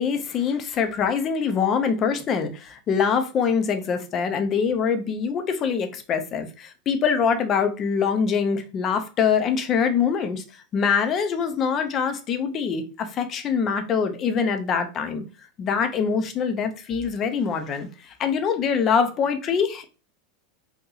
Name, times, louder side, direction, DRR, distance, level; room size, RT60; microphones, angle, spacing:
voice 1, 0.0-10.4 10.7-15.2 15.6-19.8, left 6 dB, 35° left, 0.6 m, -24 dB
2.8 x 2.6 x 3.8 m
supercardioid pair, 125°, 0 cm